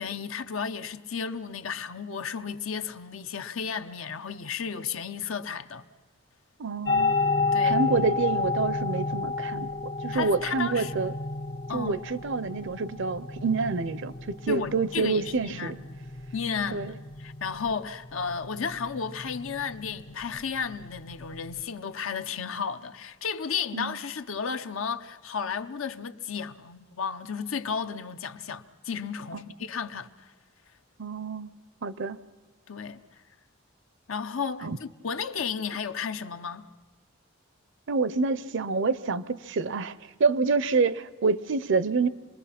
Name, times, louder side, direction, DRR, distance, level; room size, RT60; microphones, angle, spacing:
voice 1, 0.0-5.9 7.5-7.8 10.1-10.9 11.7-12.0 14.5-15.8 16.3-30.3 32.7-33.0 34.1-36.7, left 6 dB, 80° left, 0.8 m, -33 dB
voice 2, 6.6-7.2 7.6-9.7 10.0-11.1 11.7-15.8 16.7-16.9 23.7-24.0 31.0-31.5 31.8-32.2 34.6-34.8 37.9-39.9 40.2-42.1, right 4 dB, 65° right, 0.6 m, -27 dB
sound 1, 6.8-21.6, left 3 dB, 55° left, 1.3 m, -31 dB
26.5 x 21.0 x 5.8 m
head